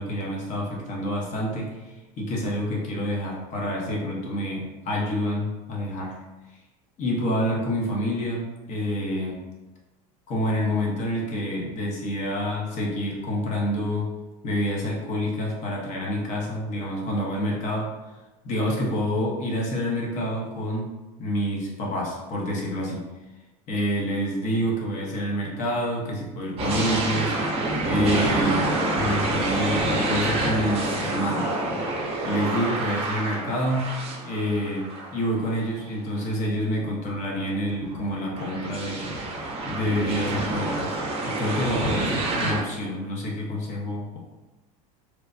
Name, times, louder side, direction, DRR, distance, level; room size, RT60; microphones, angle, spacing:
voice 1, 0.0-1.8 2.2-6.2 7.0-9.4 10.3-14.1 14.4-17.9 18.4-20.9 21.2-23.1 23.7-27.3 27.8-31.6 32.2-33.9 34.2-39.1 39.6-44.2, equal, 40° left, -2 dB, 0.8 m, -27 dB
sound 1, 26.6-35.6 36.2-36.3 37.7-42.6, right 2 dB, 30° right, 0.6 m, -27 dB
3.2 x 2.1 x 2.5 m, 1.1 s
supercardioid pair, 120°, 19 cm